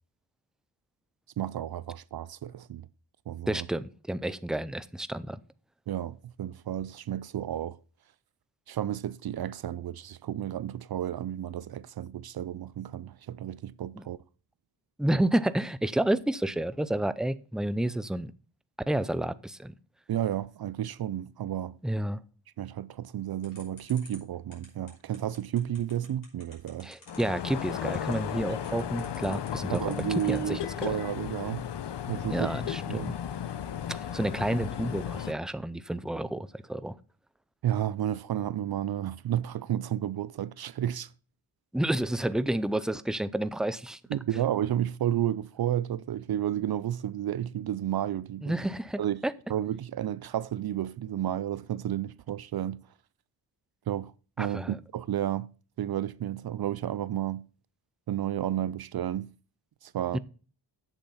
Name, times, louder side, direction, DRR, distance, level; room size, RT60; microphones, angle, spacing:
voice 1, 1.4-2.9 3.3-3.7 5.9-7.8 8.7-14.2 20.1-21.8 22.6-26.9 29.7-31.6 32.1-32.5 32.9-33.1 37.6-41.1 44.1-48.5 49.0-49.2 49.5-52.8 53.9-54.1 54.4-55.5 55.8-57.4 58.1-59.3 59.8-60.2, right 11 dB, 55° right, 0.5 m, -32 dB
voice 2, 3.5-5.4 14.0-14.1 15.0-18.3 18.9-19.7 21.8-22.2 26.8-29.8 30.1-30.6 32.3-33.2 33.9-37.0 41.7-44.0 48.4-49.3 54.4-54.8 60.1-60.2, right 1 dB, ahead, 0.4 m, -30 dB
sound 1, 23.4-30.6, left 2 dB, 45° left, 5.5 m, -51 dB
sound 2, 27.1-35.3, left 9 dB, 65° left, 0.8 m, -35 dB
7.8 x 7.2 x 5.5 m
cardioid pair, 90°, 45 cm